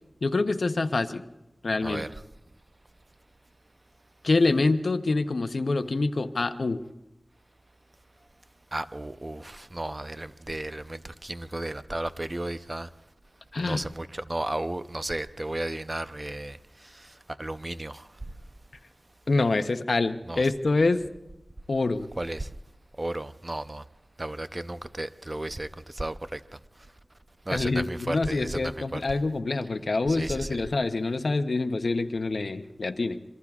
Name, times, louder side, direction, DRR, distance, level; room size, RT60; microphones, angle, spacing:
voice 1, 0.2-1.2 1.6-2.1 4.2-6.8 13.5-13.8 19.3-21.0 21.7-22.1 27.5-33.2, left 3 dB, 80° left, 0.7 m, -26 dB
voice 2, 1.8-2.1 8.7-12.9 13.6-18.1 20.3-20.5 22.2-22.5 23.0-23.8 24.2-26.4 27.5-29.0 30.1-30.5, right 1 dB, 35° right, 0.6 m, -34 dB
26.5 x 23.0 x 2.4 m
wide cardioid pair, 55°, 0 cm